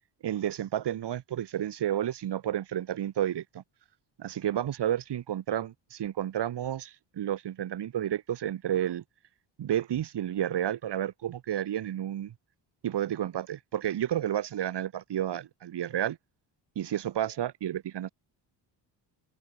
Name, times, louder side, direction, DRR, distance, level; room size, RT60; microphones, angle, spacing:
voice 1, 0.2-3.6 4.2-9.0 9.6-12.3 12.8-16.2 16.8-18.1, right 11 dB, 65° right, 7.4 m, -31 dB
cardioid pair, 155°, 45 cm